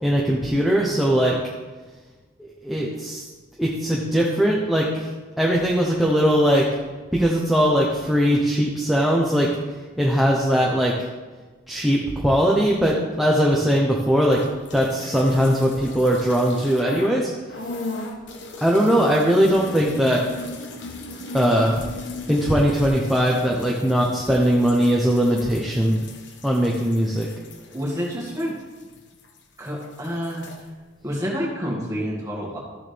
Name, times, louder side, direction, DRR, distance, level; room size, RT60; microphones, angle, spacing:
voice 1, 0.0-1.4 2.6-3.2 3.6-5.1 5.4-6.7 7.1-9.5 10.0-11.1 11.7-14.4 14.7-17.3 18.6-20.2 21.3-21.9 22.3-26.0 26.4-27.3, equal, ahead, -4 dB, 0.8 m, -20 dB
sound 1, 14.2-17.2 17.5-29.4 29.7-30.6, left 2 dB, 65° left, 1.1 m, -38 dB
voice 2, 27.7-28.6 29.6-30.7 31.0-32.6, equal, 15° right, -4 dB, 2.1 m, -28 dB
13.5 x 7.1 x 3.4 m, 1.3 s
head